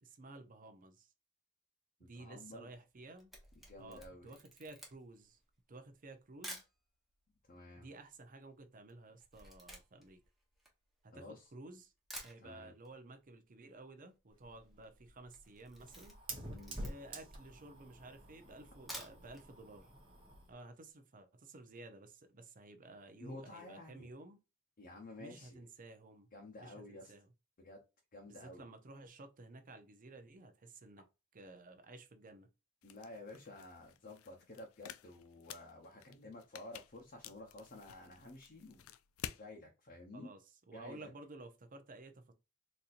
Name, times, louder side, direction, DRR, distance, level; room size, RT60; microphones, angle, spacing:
voice 1, 0.0-1.1 2.0-3.3 3.8-5.4 5.7-6.6 7.7-10.2 11.0-11.9 12.2-16.2 16.8-19.9 20.5-24.4 25.2-26.3 26.6-27.3 28.3-31.0 31.3-32.5 40.1-42.3, right 2 dB, 40° right, 0.6 m, -54 dB
voice 2, 2.0-2.7 3.6-4.3 7.5-7.9 11.1-11.5 12.4-12.7 16.5-16.8 23.2-24.1 24.8-25.6 26.3-27.1 27.6-27.8 28.1-28.7 32.8-38.8 39.4-40.3 40.7-41.1, left 1 dB, 45° left, 0.8 m, -52 dB
Camera, 2.9-6.8 7.5-7.6 7.7-11.4 11.8-11.9 12.1-12.9 13.2-13.3 13.6-13.7 13.9-14.3 14.6-14.9 15.2-17.3 17.8-17.9 18.7-19.5 19.8-19.9 20.3-20.4, equal, ahead, 1.1 m, -52 dB
Fire, 14.3-20.5, right 1 dB, 25° right, 1.0 m, -49 dB
sound 1, 32.8-39.5, left 10 dB, 75° left, 0.3 m, -52 dB
4.2 x 2.8 x 2.5 m
head